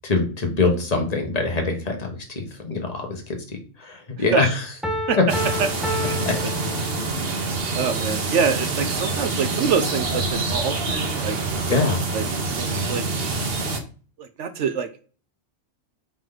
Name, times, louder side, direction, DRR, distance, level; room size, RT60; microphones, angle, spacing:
voice 1, 0.0-2.0 2.3-3.2 3.8-4.7 6.2-6.3 11.7-12.0, left 3 dB, 30° left, 3 dB, 1.4 m, -23 dB
Piano, 4.8-7.4, left 1 dB, ahead, 0.8 m, -30 dB
sound 1, 5.3-13.8, right 3 dB, 50° right, 1.1 m, -26 dB
voice 2, 7.7-11.4 12.1-12.2 12.5-13.0 14.4-14.9, right 6 dB, 70° right, 9 dB, 0.9 m, -25 dB
8.9 x 3.1 x 3.9 m, 0.38 s
omnidirectional pair, 1.4 m